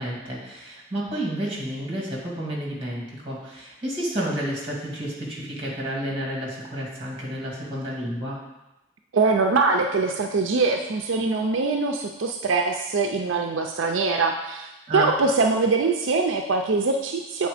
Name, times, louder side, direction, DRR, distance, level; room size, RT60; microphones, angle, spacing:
voice 1, 0.0-8.4 14.9-15.1, right 1 dB, 25° right, -4 dB, 2.0 m, -30 dB
voice 2, 9.1-17.5, right 3 dB, 70° right, 3 dB, 0.5 m, -23 dB
8.0 x 4.3 x 4.9 m, 0.99 s
head